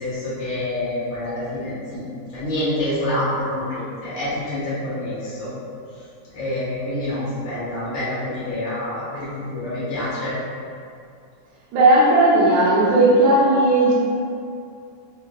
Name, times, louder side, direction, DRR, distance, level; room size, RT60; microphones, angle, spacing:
voice 1, 0.0-2.0 2.3-5.5 6.3-10.3, left 1 dB, 60° left, -11 dB, 0.8 m, -27 dB
voice 2, 11.7-13.9, right 2 dB, 65° right, -7 dB, 2.1 m, -15 dB
5.2 x 2.3 x 3.9 m, 2.4 s
omnidirectional pair, 3.7 m